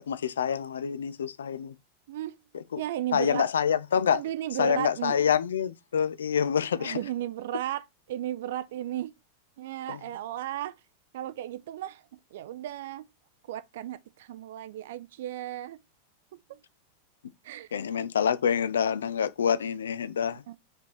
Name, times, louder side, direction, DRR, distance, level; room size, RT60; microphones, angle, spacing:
voice 1, 0.0-1.7 2.7-2.8 3.1-4.2 4.6-7.0 9.9-10.0 17.7-20.4, left 7 dB, 65° left, 0.5 m, -27 dB
voice 2, 2.1-2.4 2.8-3.5 4.1-5.2 6.8-9.1 9.6-10.8 11.1-13.0 13.5-15.8 16.5-16.6 17.4-17.7 20.3-20.6, right 13 dB, 55° right, 0.3 m, -35 dB
5.1 x 4.4 x 4.4 m
figure-of-eight pair, 90°, 0 cm